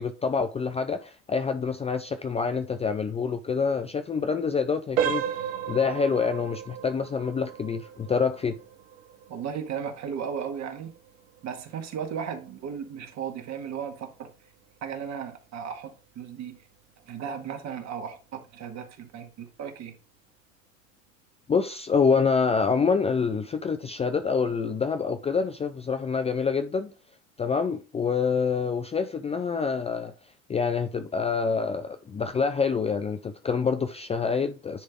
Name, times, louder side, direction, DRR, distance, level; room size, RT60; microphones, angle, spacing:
voice 1, 0.0-5.2 5.7-8.6 21.5-26.9 27.4-30.1 30.5-34.8, left 5 dB, 15° left, 0.5 m, -26 dB
sound 1, 4.9-15.6 16.0-16.2 16.8-16.9 17.4-17.5, right 9 dB, 75° right, 1.1 m, -36 dB
voice 2, 9.3-10.9 11.4-14.3 14.8-16.6 17.1-20.0, right 7 dB, 45° right, 1.8 m, -35 dB
10.0 x 3.4 x 3.6 m
hypercardioid pair, 80°, 39 cm